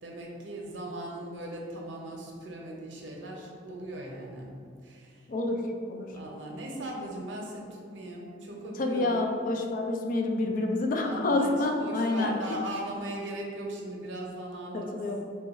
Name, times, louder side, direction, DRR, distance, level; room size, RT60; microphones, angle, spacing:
voice 1, 0.0-4.5 4.8-5.3 6.1-9.3 11.0-11.5 11.8-15.0, right 1 dB, 85° right, -1 dB, 0.7 m, -39 dB
voice 2, 5.3-6.2 8.8-12.4 14.7-15.2, left 2 dB, 50° left, 3 dB, 0.3 m, -28 dB
3.1 x 2.3 x 4.1 m, 2.2 s
head